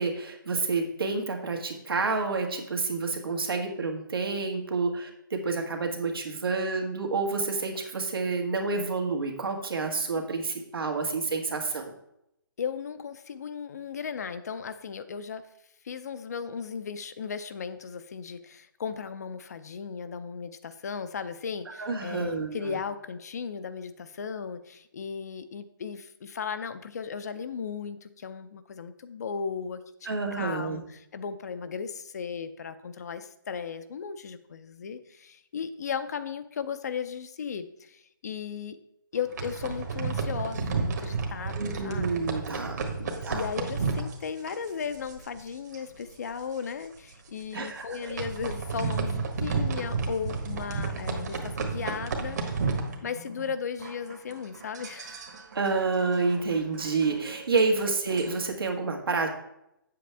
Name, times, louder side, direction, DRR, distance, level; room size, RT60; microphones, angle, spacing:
voice 1, 0.0-11.8 21.7-22.8 30.1-30.8 41.5-42.8 43.2-43.5 47.5-48.2 55.5-59.3, right 4 dB, 85° right, 2 dB, 1.8 m, -29 dB
voice 2, 12.6-15.5 15.8-38.8 39.1-42.1 43.0-52.6 53.0-55.3, left 6 dB, 50° left, 11 dB, 0.6 m, -36 dB
sound 1, 39.1-45.5 45.7-46.0 46.3-46.4 47.0-47.1 47.8-53.5 53.8-58.5, right 4 dB, 50° right, 1.5 m, -32 dB
7.7 x 7.6 x 3.4 m, 0.81 s
hypercardioid pair, 165°, 12 cm